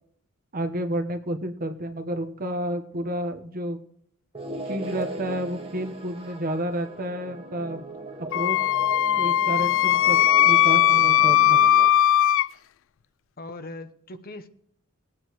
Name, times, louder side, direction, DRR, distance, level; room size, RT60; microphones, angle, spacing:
voice 1, 0.5-3.8 4.7-7.8 8.3-8.6 9.2-10.2 10.4-11.6, right 1 dB, 45° right, 6 dB, 1.3 m, -30 dB
sound 1, 4.3-11.9, right 2 dB, 25° right, 1.6 m, -38 dB
Wind instrument woodwind instrument, 8.3-12.5, left 11 dB, 65° left, 0.4 m, -19 dB
voice 2, 13.4-14.5, left 2 dB, 45° left, 9 dB, 1.0 m, -39 dB
19.5 x 8.9 x 3.2 m, 0.65 s
head